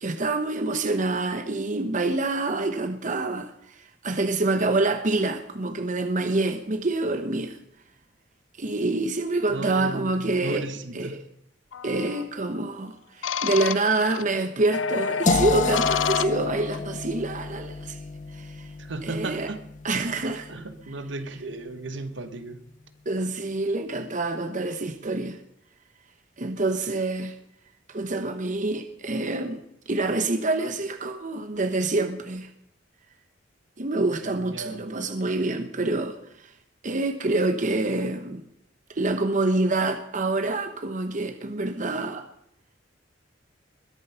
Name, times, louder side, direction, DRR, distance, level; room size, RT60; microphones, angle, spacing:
voice 1, 0.0-7.6 8.6-10.7 10.9-11.2 11.8-18.0 18.3-18.7 19.0-19.5 19.8-20.5 23.1-25.4 26.4-27.4 27.9-29.6 29.9-32.5 33.8-36.5 36.8-38.4 38.9-42.3, right 2 dB, 40° right, 1.0 m, -26 dB
voice 2, 9.5-11.2 18.8-19.7 20.5-22.6 34.2-34.8, right 2 dB, 70° right, 1.4 m, -35 dB
sound 1, 11.7-12.2 13.2-14.2 14.7-16.8, left 7 dB, 85° left, 0.5 m, -29 dB
sound 2, 15.3-21.2, left 3 dB, 40° left, 0.8 m, -30 dB
21.0 x 11.0 x 5.7 m
head